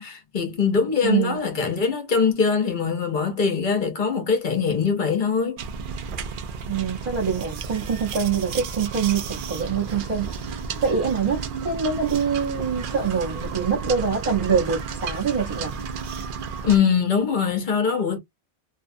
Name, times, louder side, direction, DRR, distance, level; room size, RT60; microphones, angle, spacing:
voice 1, 0.0-5.6 16.6-18.2, left 6 dB, 50° left, 0.9 m, -22 dB
voice 2, 1.0-1.4 6.7-15.7, right 6 dB, 35° right, 0.9 m, -25 dB
sound 1, 5.6-16.8, right 5 dB, 60° right, 0.6 m, -32 dB
2.6 x 2.3 x 2.6 m
omnidirectional pair, 1.1 m